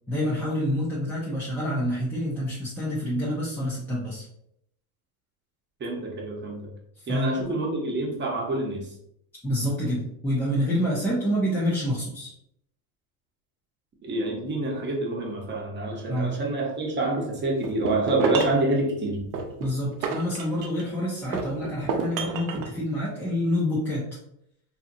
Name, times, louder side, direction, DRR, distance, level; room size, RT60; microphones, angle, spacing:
voice 1, 0.1-4.3 7.1-7.3 9.4-12.3 16.1-16.4 19.6-24.0, equal, 5° left, -8 dB, 0.3 m, -27 dB
voice 2, 5.8-6.7 7.1-8.9 14.0-19.2, right 2 dB, 20° right, -1 dB, 0.8 m, -27 dB
sound 1, 17.6-18.7 19.3-20.9 21.3-22.7, right 4 dB, 90° right, 0.7 m, -29 dB
2.7 x 2.6 x 2.5 m, 0.74 s
supercardioid pair, 110°, 49 cm